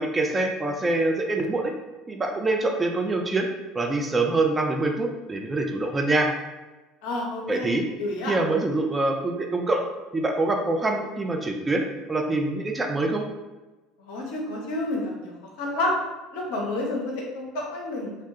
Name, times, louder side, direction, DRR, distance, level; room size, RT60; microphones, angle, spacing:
voice 1, 0.0-1.7 2.1-3.5 3.7-6.3 7.5-7.8 8.3-9.8 10.1-11.8 12.1-13.2, right 2 dB, 20° right, 3 dB, 0.3 m, -25 dB
voice 2, 7.0-7.7 8.0-8.3 14.0-15.9 16.3-18.2, left 2 dB, 65° left, -1 dB, 0.6 m, -30 dB
2.1 x 2.1 x 2.7 m, 1.1 s
figure-of-eight pair, 65°, 0 cm